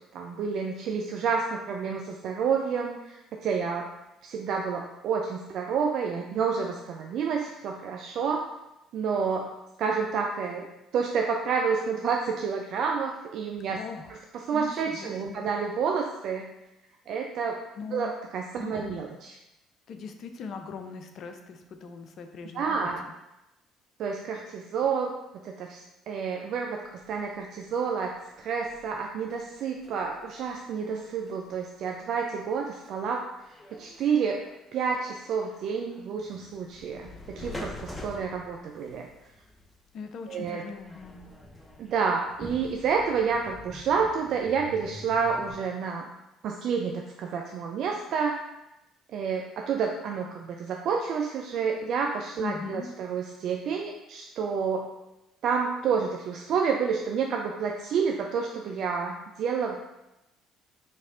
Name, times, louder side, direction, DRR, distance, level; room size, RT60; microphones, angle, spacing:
voice 1, 0.1-3.9 4.2-8.5 8.9-9.5 9.8-10.7 10.9-13.8 14.1-16.5 17.1-17.6 17.9-19.4 22.5-23.0 24.0-25.1 25.4-33.3 33.7-34.4 34.7-39.1 40.3-40.6 41.8-46.0 46.4-48.4 49.1-54.9 55.4-59.8, right 6 dB, 55° right, 1 dB, 0.4 m, -29 dB
voice 2, 13.7-14.2 14.5-15.5 17.8-18.1 18.6-19.0 19.9-22.9 39.9-41.3 52.4-52.9, left 5 dB, 55° left, 6 dB, 0.5 m, -40 dB
sound 1, 27.0-33.1 33.5-45.6, left 1 dB, 15° left, 0.8 m, -47 dB
4.3 x 3.1 x 3.7 m, 0.92 s
figure-of-eight pair, 55°, 0 cm